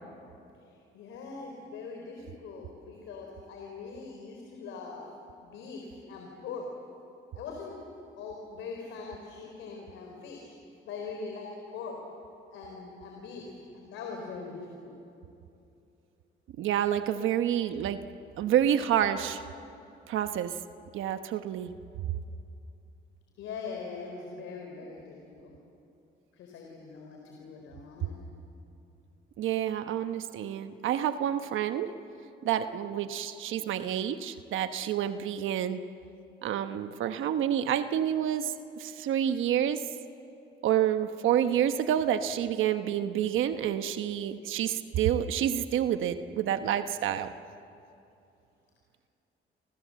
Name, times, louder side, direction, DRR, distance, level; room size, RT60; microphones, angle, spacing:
voice 1, 0.9-5.0 5.4-6.7 7.3-7.8 8.2-10.5 10.9-12.0 12.5-15.0 23.4-25.5 26.3-28.2, left 4 dB, 90° left, 1 dB, 4.0 m, -42 dB
voice 2, 16.6-18.0 18.4-19.4 20.1-20.5 20.9-21.7 29.4-31.9 32.4-35.8 36.4-39.8 40.6-47.3, right 10 dB, 85° right, 9 dB, 1.1 m, -28 dB
30.0 x 26.0 x 7.6 m, 2.7 s
cardioid pair, 90°, 20 cm